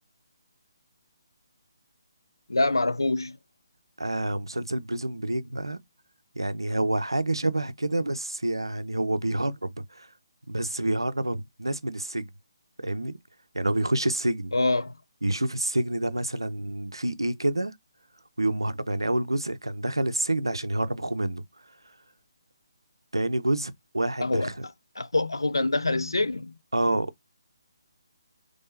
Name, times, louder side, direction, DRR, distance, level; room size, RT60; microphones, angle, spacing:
voice 1, 2.5-3.4 14.5-14.9 24.2-24.5 25.0-26.5, left 2 dB, 75° left, 0.4 m, -25 dB
voice 2, 4.0-5.8 6.4-10.1 10.5-12.3 12.8-13.2 13.5-14.6 15.2-17.7 18.4-21.4 23.1-24.6 26.7-27.1, right 1 dB, 80° right, 0.5 m, -28 dB
3.6 x 3.3 x 2.5 m
figure-of-eight pair, 145°, 2 cm